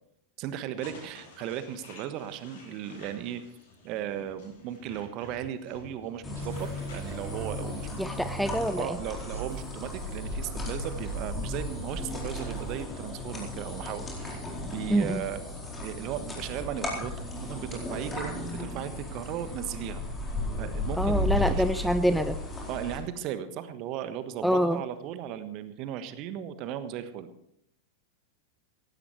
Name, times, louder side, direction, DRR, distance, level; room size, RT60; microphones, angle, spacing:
voice 1, 0.4-3.4 3.8-15.4 15.8-20.0 20.5-21.9 22.7-27.3, right 10 dB, 40° right, 11 dB, 1.4 m, -36 dB
sound 1, 0.8-7.2, left 2 dB, 55° left, 7.9 m, -50 dB
sound 2, 6.2-23.0, left 2 dB, 15° left, 4.4 m, -35 dB
sound 3, 6.4-8.7 9.3-12.8, right 10 dB, 65° right, 1.1 m, -42 dB
voice 2, 8.0-9.0 14.9-15.2 21.0-22.4 24.4-24.8, equal, ahead, 10 dB, 0.6 m, -26 dB
16.5 x 16.0 x 3.3 m, 0.72 s
figure-of-eight pair, 90°, 0 cm